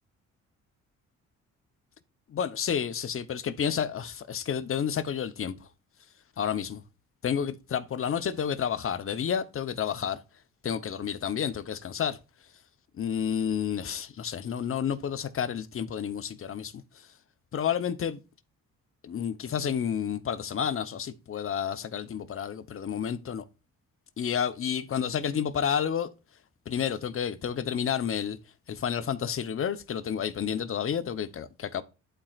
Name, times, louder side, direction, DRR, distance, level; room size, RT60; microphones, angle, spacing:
voice 1, 2.3-5.6 6.4-6.8 7.2-10.2 10.6-12.2 12.9-17.1 17.5-18.2 19.0-23.4 24.2-26.1 26.7-28.4 28.7-31.8, left 8 dB, 45° left, 0.9 m, -30 dB
11.5 x 4.4 x 2.4 m
cardioid pair, 90°, 30 cm